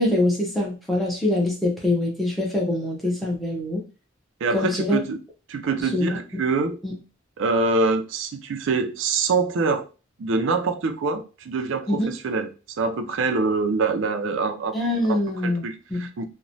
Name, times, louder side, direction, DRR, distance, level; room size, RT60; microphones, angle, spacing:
voice 1, 0.0-3.8 4.5-5.0 5.9-6.2 6.8-6.9 11.9-12.1 14.7-15.6 15.9-16.1, left 1 dB, ahead, 0.7 m, -24 dB
voice 2, 4.4-5.2 5.5-6.8 7.4-9.8 10.2-12.5 12.8-14.7 15.0-15.2 15.4-16.2, right 3 dB, 70° right, 0.4 m, -25 dB
3.0 x 2.1 x 2.6 m
head